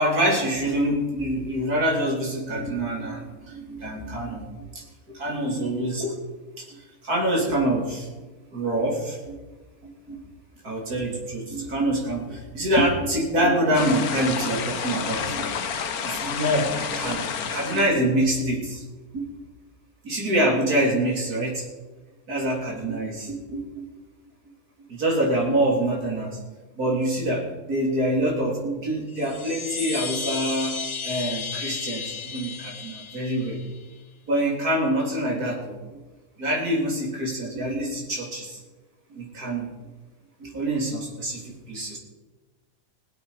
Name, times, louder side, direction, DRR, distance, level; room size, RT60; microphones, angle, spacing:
voice 1, 0.0-6.1 6.6-8.1 8.5-9.4 9.8-10.2 10.6-15.6 16.0-18.8 19.1-19.3 20.0-21.7 22.3-23.9 24.9-26.4 26.8-33.6 34.3-35.8 36.4-38.6 39.1-39.7 40.4-42.0, right 1 dB, 70° right, -2 dB, 3.8 m, -26 dB
sound 1, 13.7-17.9, left 6 dB, 70° left, 1.4 m, -30 dB
Chime, 29.1-33.8, left 5 dB, 40° left, 0.4 m, -33 dB
21.0 x 7.9 x 5.0 m, 1.2 s
omnidirectional pair, 1.6 m